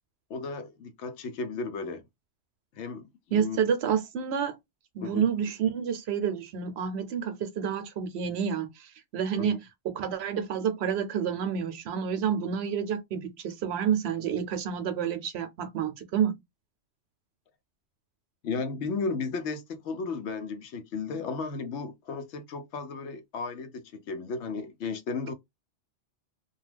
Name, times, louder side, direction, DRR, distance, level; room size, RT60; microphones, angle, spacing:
voice 1, 0.3-2.0 2.7-3.6 5.0-5.3 9.4-9.6 18.4-25.3, left 4 dB, 75° left, 0.9 m, -34 dB
voice 2, 3.3-4.6 4.9-16.3, right 7 dB, 70° right, 0.8 m, -29 dB
2.3 x 2.3 x 3.2 m
omnidirectional pair, 1.2 m